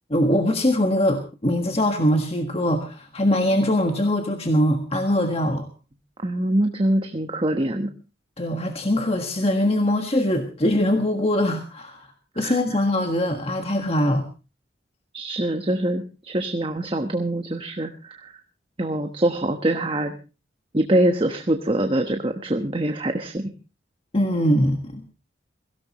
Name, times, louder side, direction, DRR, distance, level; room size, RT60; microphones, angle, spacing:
voice 1, 0.1-5.7 8.4-12.1 12.3-14.3 24.1-25.1, left 1 dB, 30° left, 5 dB, 1.6 m, -22 dB
voice 2, 6.2-7.9 12.4-12.6 15.1-18.3 18.8-20.1 20.7-23.5, right 1 dB, 30° right, 5 dB, 1.2 m, -24 dB
22.5 x 16.5 x 3.1 m, 0.32 s
head